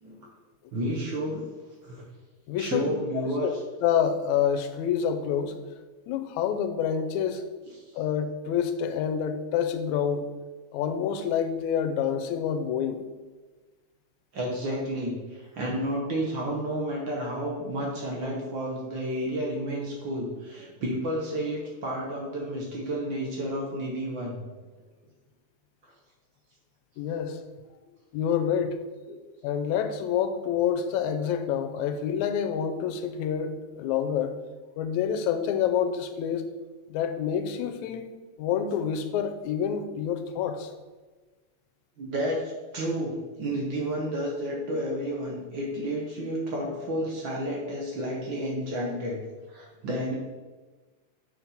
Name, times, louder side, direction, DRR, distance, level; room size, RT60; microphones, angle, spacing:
voice 1, 0.7-1.4 1.8-2.0 2.6-3.5 14.3-24.4 42.0-49.2 49.5-50.2, right 1 dB, 60° right, -2 dB, 1.4 m, -31 dB
voice 2, 2.5-3.5 3.8-5.6 6.1-7.4 8.0-10.3 10.7-13.1 27.0-27.4 27.7-28.8 29.4-34.3 34.8-36.4 36.9-38.1 38.4-40.7, left 8 dB, 85° left, 8 dB, 2.0 m, -27 dB
6.3 x 5.9 x 4.0 m, 1.3 s
omnidirectional pair, 3.3 m